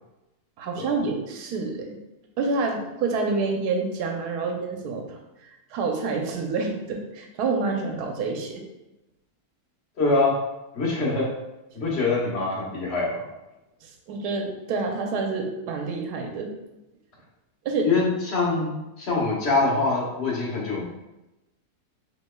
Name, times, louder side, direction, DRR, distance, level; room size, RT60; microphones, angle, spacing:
voice 1, 0.6-2.0 2.4-5.2 5.7-8.6 13.8-16.5 17.6-17.9, right 4 dB, 80° right, 2 dB, 1.2 m, -28 dB
voice 2, 10.0-10.3 10.7-11.3 11.7-13.2 17.8-20.8, left 3 dB, 45° left, -4 dB, 1.3 m, -24 dB
6.0 x 3.0 x 2.2 m, 0.97 s
omnidirectional pair, 1.7 m